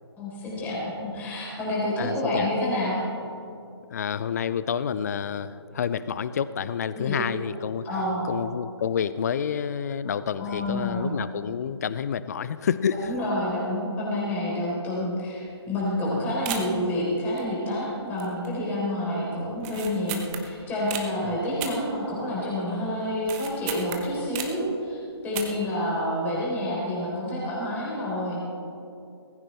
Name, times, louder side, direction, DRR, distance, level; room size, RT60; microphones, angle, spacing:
voice 1, 0.2-3.0 6.9-7.2 7.8-8.3 10.0-10.1 10.4-11.1 12.9-25.0 25.2-28.4, left 1 dB, 15° left, -6 dB, 4.0 m, -28 dB
voice 2, 2.0-2.5 3.9-7.9 8.2-13.1 21.2-21.4, left 7 dB, 35° left, 15 dB, 0.5 m, -29 dB
sound 1, 15.5-15.7 16.0-16.1 16.5-16.9 17.4-17.9 18.2-18.6 18.9-19.0 19.6-21.1 21.6-22.5 22.8-24.7 25.2-25.7 26.0-26.1, right 8 dB, 20° right, 1.0 m, -35 dB
19.0 x 15.5 x 3.4 m, 2.6 s
figure-of-eight pair, 140°, 14 cm